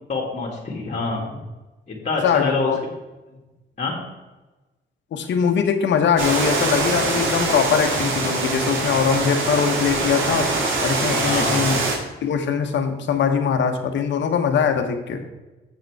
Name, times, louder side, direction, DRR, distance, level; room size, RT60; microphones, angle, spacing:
voice 1, 0.1-1.3 1.9-2.7 3.8-4.0 11.2-11.9, left 3 dB, 35° left, -3 dB, 1.9 m, -26 dB
voice 2, 2.1-2.8 5.1-10.5 10.8-11.8 12.2-15.2, left 7 dB, 65° left, 6 dB, 1.1 m, -21 dB
sound 1, 6.2-12.0, right 3 dB, 85° right, 1.8 m, -23 dB
7.6 x 6.6 x 4.7 m, 1.1 s
cardioid pair, 90°, 20 cm